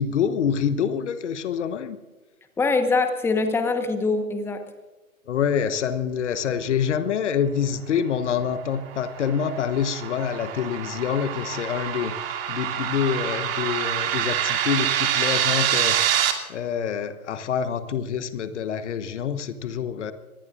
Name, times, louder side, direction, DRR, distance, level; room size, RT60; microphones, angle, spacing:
voice 1, 0.0-2.0 5.3-16.0 16.5-20.1, left 7 dB, 50° left, 12 dB, 1.2 m, -26 dB
voice 2, 2.6-4.6, left 3 dB, 5° left, 7 dB, 1.1 m, -23 dB
sound 1, 8.6-16.3, right 10 dB, 40° right, 2.5 m, -26 dB
25.0 x 19.5 x 2.5 m, 1.2 s
figure-of-eight pair, 115°, 44 cm